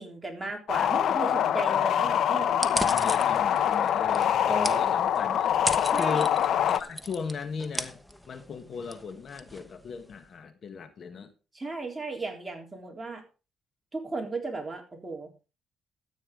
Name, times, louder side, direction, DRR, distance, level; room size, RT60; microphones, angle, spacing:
voice 1, 0.0-3.1 4.5-5.0 5.9-6.2 11.5-13.2 13.9-15.3, right 3 dB, 15° right, 1 dB, 3.7 m, -36 dB
sound 1, 0.7-6.8, left 9 dB, 70° left, 0.8 m, -24 dB
sound 2, 2.5-10.3, equal, 5° left, 1.1 m, -37 dB
voice 2, 2.8-5.5 5.9-6.4 6.6-8.0 8.3-11.3, left 5 dB, 50° left, 9 dB, 1.4 m, -37 dB
13.5 x 9.0 x 3.8 m, 0.32 s
cardioid pair, 90°, 0 cm